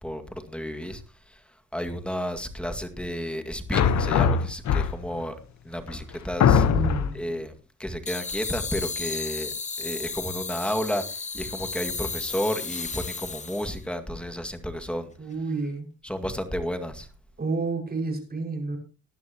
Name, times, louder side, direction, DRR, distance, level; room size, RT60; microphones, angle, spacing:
voice 1, 0.0-5.4 5.6-6.7 7.1-7.5 7.8-15.1 16.0-17.1, equal, 5° left, 7 dB, 2.0 m, -32 dB
sound 1, 3.7-5.2 5.9-6.0 6.4-7.2, left 7 dB, 65° left, 1.1 m, -21 dB
voice 2, 6.7-7.2 15.2-15.9 17.4-18.8, right 3 dB, 30° right, 3 dB, 5.5 m, -30 dB
sound 2, 8.1-13.8, left 4 dB, 25° left, 1.0 m, -34 dB
19.0 x 11.0 x 2.9 m, 0.33 s
cardioid pair, 90°, 30 cm